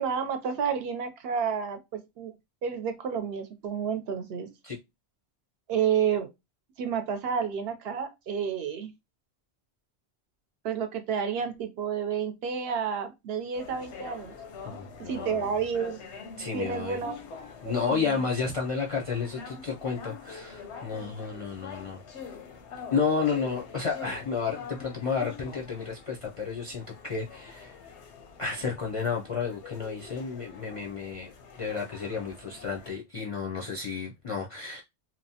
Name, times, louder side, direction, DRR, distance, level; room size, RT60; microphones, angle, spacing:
voice 1, 0.0-2.3 2.6-4.5 5.7-6.3 6.8-8.9 10.6-14.3 15.0-16.0 16.5-18.2, right 7 dB, 70° right, 0.7 m, -30 dB
sound 1, 13.5-32.9, left 6 dB, 85° left, 0.9 m, -45 dB
voice 2, 14.6-15.5 16.4-17.0 17.6-22.0 22.9-27.7 28.4-31.3 31.6-34.8, left 5 dB, 50° left, 0.4 m, -31 dB
2.9 x 2.0 x 2.7 m
omnidirectional pair, 1.1 m